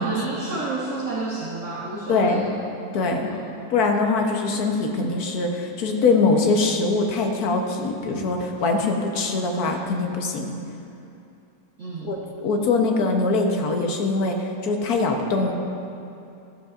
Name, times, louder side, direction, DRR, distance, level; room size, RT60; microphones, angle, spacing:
voice 1, 0.0-2.5 3.2-3.4 11.8-12.1, right 3 dB, 50° right, -5 dB, 1.3 m, -30 dB
voice 2, 2.1-2.5 2.9-3.3 3.7-10.5 12.0-15.5, left 3 dB, 65° left, 2 dB, 1.4 m, -22 dB
14.0 x 12.5 x 2.5 m, 2.7 s
omnidirectional pair, 1.9 m